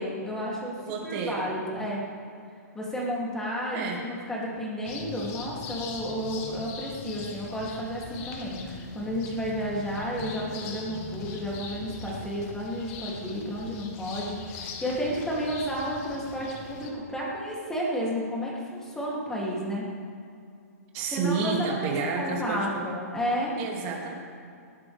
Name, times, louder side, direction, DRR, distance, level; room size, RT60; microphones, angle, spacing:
voice 1, 0.0-0.8 1.0-2.0 2.7-19.9 21.1-23.6, equal, 5° left, -5 dB, 2.9 m, -32 dB
voice 2, 0.8-1.5 3.7-4.0 20.9-22.9 23.6-24.1, right 5 dB, 35° right, -1 dB, 2.6 m, -30 dB
sound 1, 4.9-16.9, left 5 dB, 30° left, 1.5 m, -41 dB
20.0 x 12.5 x 3.6 m, 2.4 s
hypercardioid pair, 150°, 9 cm